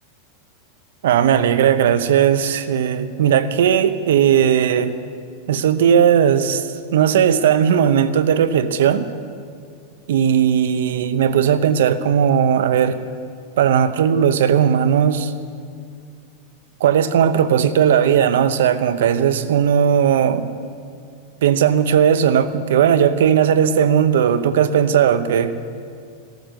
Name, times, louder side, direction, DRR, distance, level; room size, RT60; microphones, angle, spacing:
voice 1, 1.0-5.0 5.5-9.1 10.1-13.0 13.6-15.3 16.8-20.5 21.4-25.5, right 8 dB, 80° right, 13 dB, 0.8 m, -17 dB
13.5 x 13.0 x 6.4 m, 2.3 s
supercardioid pair, 155°, 0 cm